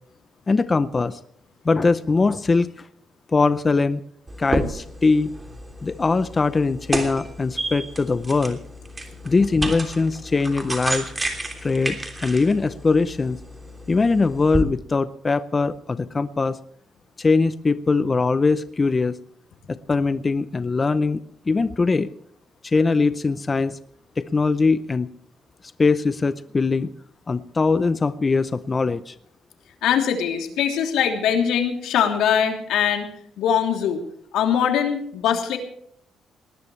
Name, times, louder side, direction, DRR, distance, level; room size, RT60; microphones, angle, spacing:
voice 1, 0.5-1.2 1.6-2.9 3.3-4.0 4.4-5.3 5.8-8.6 9.2-11.1 11.6-13.4 13.9-16.6 17.2-19.2 19.7-22.1 22.6-23.8 24.2-25.1 25.8-26.9 27.3-29.1, left 4 dB, 25° left, 13 dB, 0.6 m, -21 dB
sound 1, 4.3-14.6, right 1 dB, 15° right, 3.1 m, -31 dB
voice 2, 29.8-33.1 33.4-34.0 34.3-35.6, left 8 dB, 85° left, 4 dB, 3.1 m, -22 dB
19.5 x 19.0 x 3.3 m, 0.66 s
cardioid pair, 135°, 0 cm